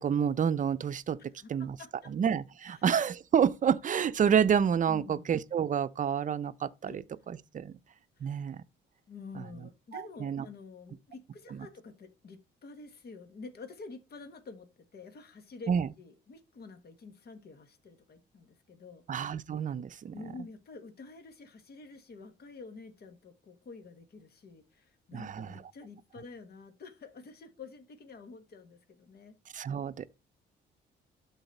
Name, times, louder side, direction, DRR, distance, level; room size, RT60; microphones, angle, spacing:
voice 1, 0.0-1.2 1.5-1.8 2.1-7.8 8.2-8.6 9.9-10.5 11.5-11.7 15.7-15.9 19.1-20.1 25.1-25.5 29.5-30.1, right 8 dB, 40° right, 0.6 m, -29 dB
voice 2, 1.4-2.1 2.7-2.8 4.9-5.3 6.8-7.0 8.2-8.4 9.1-19.0 20.1-29.4, left 4 dB, 55° left, 1.5 m, -49 dB
12.0 x 4.1 x 4.1 m
cardioid pair, 90°, 20 cm